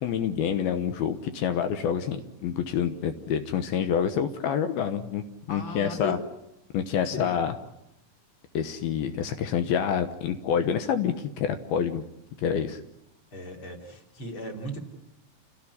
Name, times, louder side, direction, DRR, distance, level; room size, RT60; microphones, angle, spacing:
voice 1, 0.0-6.2 6.7-7.5 8.5-12.0 12.4-12.8, left 8 dB, 80° left, 8 dB, 3.0 m, -27 dB
voice 2, 5.5-6.2 7.2-7.3 13.3-14.8, left 2 dB, 30° left, 3 dB, 3.9 m, -36 dB
29.0 x 18.0 x 9.7 m, 0.87 s
omnidirectional pair, 4.4 m